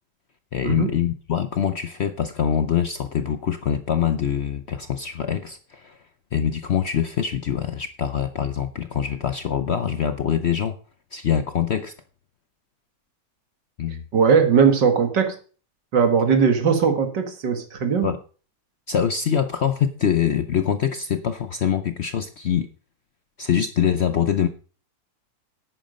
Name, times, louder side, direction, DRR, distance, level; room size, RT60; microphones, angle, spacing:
voice 1, 0.5-6.0 6.3-10.8 11.1-11.9 13.8-14.1 18.0-18.2 18.9-22.7 23.4-24.5, left 8 dB, 60° left, 11 dB, 0.7 m, -24 dB
voice 2, 14.1-15.4 15.9-18.1, right 6 dB, 85° right, 7 dB, 2.4 m, -19 dB
10.5 x 9.1 x 5.2 m, 0.39 s
omnidirectional pair, 1.8 m